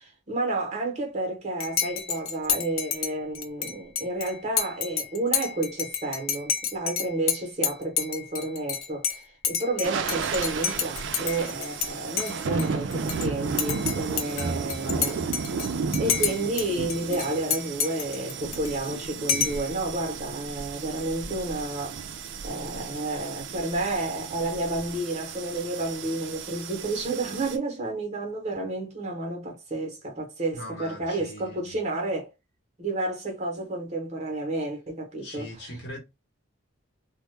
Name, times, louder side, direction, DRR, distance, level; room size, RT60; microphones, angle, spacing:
voice 1, 0.0-15.3 16.0-22.0 22.4-32.3 32.8-35.7, right 2 dB, 30° right, 0.7 m, -31 dB
Dishes pots and pans / Cutlery silverware / Chink clink, 1.6-11.9 12.2-13.3 13.6-16.6 16.9-18.9 19.3-19.7, left 8 dB, 75° left, 0.4 m, -30 dB
sound 1, 9.8-27.6, right 5 dB, 60° right, 0.3 m, -34 dB
voice 2, 14.4-15.0 30.5-31.8 35.2-36.0, right 1 dB, 50° left, 0.9 m, -38 dB
2.1 x 2.0 x 3.1 m
head